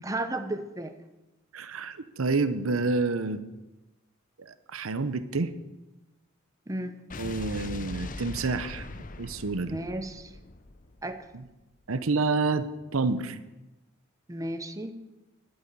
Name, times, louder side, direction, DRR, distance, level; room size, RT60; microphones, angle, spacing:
voice 1, 0.0-1.0 6.7-7.0 9.7-10.4 11.0-11.3 14.3-14.9, right 1 dB, 15° right, 7 dB, 0.9 m, -33 dB
voice 2, 1.5-3.4 4.7-5.5 7.2-8.9 9.2-9.8 11.9-12.7 12.9-13.4, right 3 dB, 75° right, 12 dB, 0.8 m, -28 dB
Explosion, 7.1-11.4, left 2 dB, 40° left, 0.8 m, -40 dB
11.0 x 9.3 x 8.5 m, 1.0 s
head